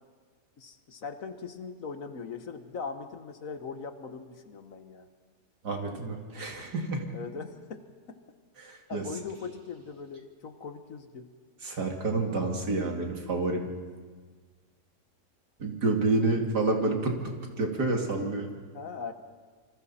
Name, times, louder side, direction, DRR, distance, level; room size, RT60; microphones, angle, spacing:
voice 1, 0.6-5.1 7.1-7.8 8.1-8.2 8.9-11.3 18.7-19.1, left 5 dB, 55° left, 7 dB, 1.5 m, -40 dB
voice 2, 5.6-7.1 8.6-9.0 11.6-13.6 15.6-17.1 17.6-18.5, right 3 dB, 75° right, 1 dB, 3.1 m, -28 dB
28.0 x 25.0 x 4.3 m, 1.5 s
omnidirectional pair, 1.8 m